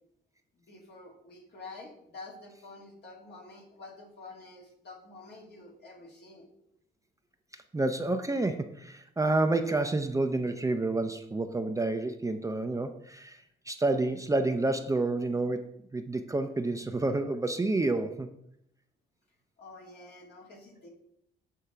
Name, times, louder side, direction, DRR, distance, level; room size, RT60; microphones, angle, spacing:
voice 1, 0.6-6.5 19.6-20.9, left 3 dB, 55° left, -1 dB, 2.3 m, -48 dB
voice 2, 7.7-18.3, right 2 dB, 15° right, 6 dB, 0.6 m, -29 dB
8.0 x 3.6 x 5.6 m, 0.74 s
cardioid pair, 90°, 20 cm